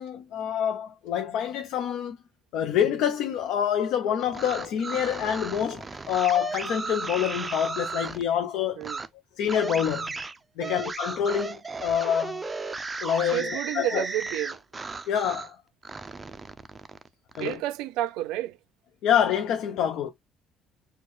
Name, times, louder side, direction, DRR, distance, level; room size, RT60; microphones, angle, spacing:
voice 1, 0.0-2.2 2.5-8.9 9.4-10.1 10.6-12.4 13.0-14.0 15.1-15.6 17.4-17.6 19.0-20.1, left 9 dB, 75° left, 0.5 m, -26 dB
sound 1, 4.2-8.2 8.8-9.1 9.5-15.5 15.8-17.6, right 4 dB, 20° right, 0.4 m, -35 dB
voice 2, 13.3-14.6 17.4-18.6, right 14 dB, 90° right, 0.3 m, -30 dB
4.5 x 2.2 x 2.9 m
cardioid pair, 130°, 0 cm